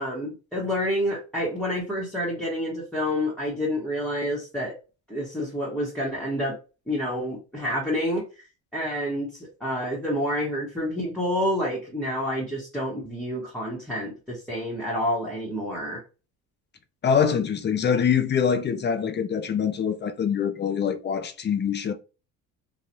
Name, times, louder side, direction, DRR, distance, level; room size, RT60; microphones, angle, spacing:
voice 1, 0.0-4.8 5.1-6.6 6.9-8.5 8.7-16.0, equal, ahead, 1.0 m, -28 dB
voice 2, 17.0-21.9, left 7 dB, 30° left, 0.5 m, -24 dB
3.2 x 2.2 x 2.6 m
cardioid pair, 100°, 37 cm